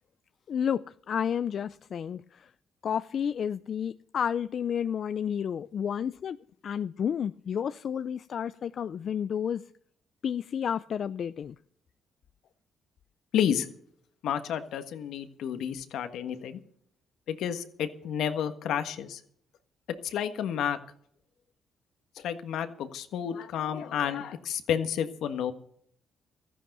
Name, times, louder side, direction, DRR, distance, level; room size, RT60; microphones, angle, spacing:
voice 1, 0.5-2.2 2.8-6.4 6.6-9.6 10.2-11.5, left 8 dB, 55° left, 0.4 m, -31 dB
voice 2, 13.3-13.7 14.2-16.6 17.3-19.2 20.0-20.8 22.2-25.5, left 9 dB, 80° left, 1.5 m, -30 dB
14.5 x 10.0 x 6.7 m
cardioid pair, 90°, 0 cm